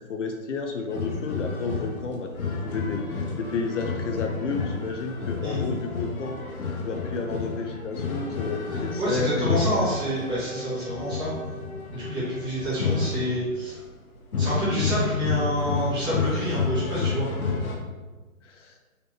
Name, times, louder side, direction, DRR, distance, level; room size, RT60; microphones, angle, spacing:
voice 1, 0.0-6.4 6.8-9.4 18.4-18.7, left 4 dB, 60° left, 4 dB, 0.5 m, -31 dB
sound 1, 0.9-13.8 14.3-17.7, left 4 dB, 85° left, 1.0 m, -30 dB
voice 2, 9.0-11.3 11.9-13.7 14.4-17.3, equal, 10° right, -9 dB, 1.2 m, -28 dB
3.9 x 3.3 x 2.9 m, 1.2 s
hypercardioid pair, 145°, 42 cm